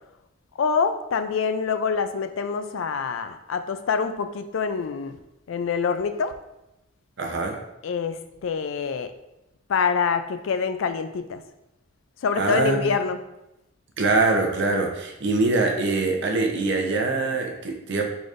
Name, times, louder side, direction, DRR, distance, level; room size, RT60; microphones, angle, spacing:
voice 1, 0.6-5.2 5.5-6.4 7.8-9.1 9.7-11.4 12.2-13.2, left 5 dB, 80° left, 10 dB, 0.4 m, -25 dB
voice 2, 7.2-7.6 12.4-12.9 14.0-18.0, right 3 dB, 65° right, 2 dB, 0.8 m, -23 dB
4.9 x 4.0 x 2.5 m, 0.91 s
head